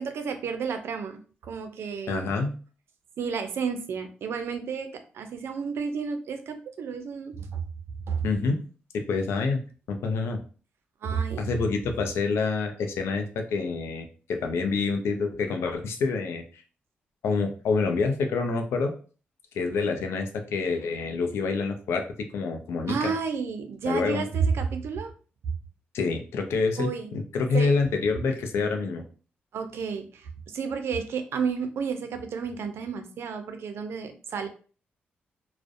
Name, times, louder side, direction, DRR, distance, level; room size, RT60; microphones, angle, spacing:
voice 1, 0.0-2.2 3.2-7.6 8.1-8.2 11.0-11.4 22.9-25.1 26.8-27.1 27.5-27.8 29.5-34.5, right 6 dB, 75° right, 7 dB, 0.4 m, -31 dB
voice 2, 2.1-2.5 8.2-8.6 8.9-9.6 9.9-10.4 11.4-16.4 17.2-18.9 19.5-23.1 23.8-24.2 25.9-29.0, left 4 dB, 85° left, 5 dB, 0.4 m, -27 dB
2.5 x 2.0 x 2.4 m, 0.39 s
cardioid pair, 65°, 4 cm